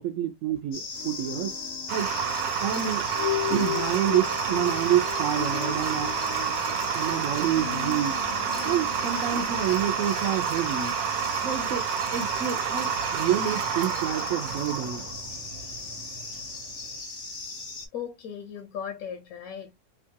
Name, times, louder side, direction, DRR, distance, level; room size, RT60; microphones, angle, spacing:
voice 1, 0.0-1.5 1.9-2.1 2.6-3.1 3.5-6.1 6.9-8.2 8.6-10.9 11.4-15.1, right 10 dB, 65° right, 0.8 m, -28 dB
sound 1, 0.7-17.9, left 4 dB, 35° left, 0.7 m, -37 dB
sound 2, 0.9-11.0, left 13 dB, 90° left, 0.7 m, -37 dB
sound 3, 1.9-16.8, right 8 dB, 85° right, 1.3 m, -30 dB
voice 2, 17.9-19.7, left 8 dB, 65° left, 0.9 m, -37 dB
3.0 x 2.4 x 2.7 m
omnidirectional pair, 1.9 m